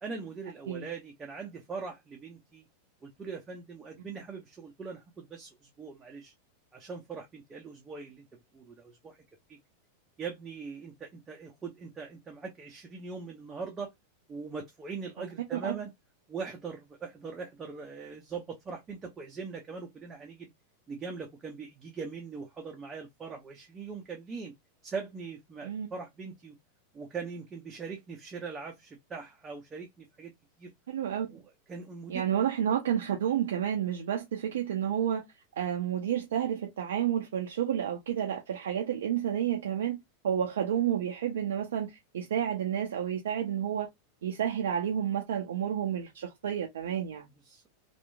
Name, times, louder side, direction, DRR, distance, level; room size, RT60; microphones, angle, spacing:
voice 1, 0.0-2.7 3.0-6.3 6.7-8.3 8.5-9.2 9.5-9.6 10.2-13.9 14.3-15.9 16.3-20.5 20.9-24.5 24.8-26.5 26.9-30.3 30.6-30.7 31.3-31.4 31.7-32.3 47.4-47.7, right 5 dB, 20° right, 0.6 m, -41 dB
voice 2, 30.9-31.3 32.1-35.2 35.5-40.0 40.2-43.9 44.2-47.3, right 9 dB, 60° right, 0.5 m, -30 dB
2.8 x 2.4 x 2.2 m
figure-of-eight pair, 90°, 0 cm